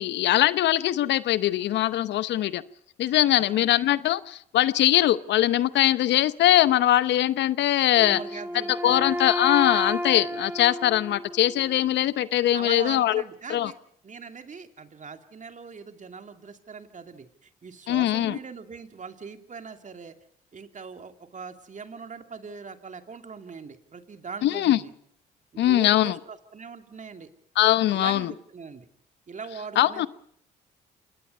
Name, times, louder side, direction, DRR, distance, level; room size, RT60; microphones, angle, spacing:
voice 1, 0.0-2.6 3.0-8.2 8.8-13.2 13.5-13.7 17.9-18.4 24.4-24.8 25.6-26.2 27.6-28.3 29.8-30.1, left 13 dB, 70° left, 16 dB, 0.9 m, -22 dB
voice 2, 3.3-3.7 8.0-9.1 12.5-13.8 14.0-20.2 20.5-24.9 25.6-27.3 27.9-28.9 29.3-30.1, right 5 dB, 40° right, 7 dB, 2.6 m, -41 dB
Wind instrument woodwind instrument, 7.9-11.9, equal, 10° right, 2.4 m, -32 dB
27.0 x 20.5 x 5.4 m, 0.67 s
hypercardioid pair, 55°, 19 cm